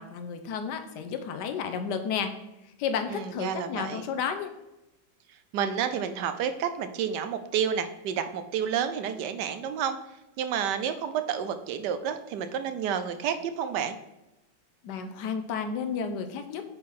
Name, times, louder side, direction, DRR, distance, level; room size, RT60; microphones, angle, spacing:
voice 1, 0.0-2.3 2.8-4.5 14.8-16.6, left 6 dB, 80° left, 7 dB, 1.3 m, -32 dB
voice 2, 3.1-4.1 5.5-10.0 10.4-14.0, right 8 dB, 80° right, 10 dB, 1.3 m, -30 dB
8.4 x 4.1 x 4.1 m, 0.96 s
omnidirectional pair, 1.9 m